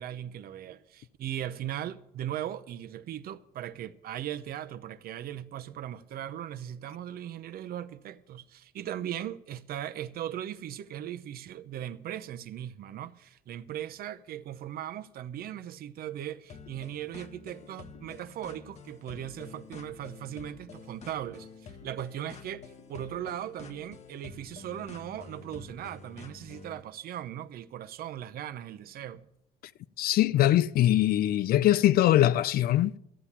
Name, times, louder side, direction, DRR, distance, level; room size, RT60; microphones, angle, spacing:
voice 1, 0.0-29.3, right 11 dB, 60° right, 0.8 m, -38 dB
sound 1, 16.5-26.8, left 5 dB, 40° left, 1.1 m, -49 dB
voice 2, 30.0-33.0, left 13 dB, 65° left, 0.5 m, -22 dB
13.5 x 8.3 x 7.3 m
cardioid pair, 110°, 17 cm